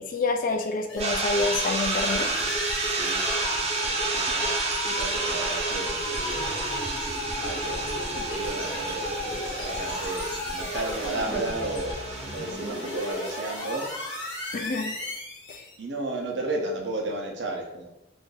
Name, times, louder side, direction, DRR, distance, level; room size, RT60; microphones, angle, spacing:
voice 1, 0.0-2.3 14.5-14.9 15.5-15.7, left 3 dB, 50° left, 5 dB, 0.4 m, -28 dB
sound 1, 0.9-15.8, left 1 dB, 90° left, 0.8 m, -35 dB
sound 2, 1.0-13.1, equal, 25° left, 0.8 m, -37 dB
sound 3, 1.0-14.3, right 3 dB, 35° right, 0.6 m, -31 dB
voice 2, 2.9-6.6 7.4-12.0 12.3-13.9 14.5-14.7 15.8-17.9, right 2 dB, 75° right, -1 dB, 0.7 m, -34 dB
2.6 x 2.6 x 3.8 m, 0.92 s
head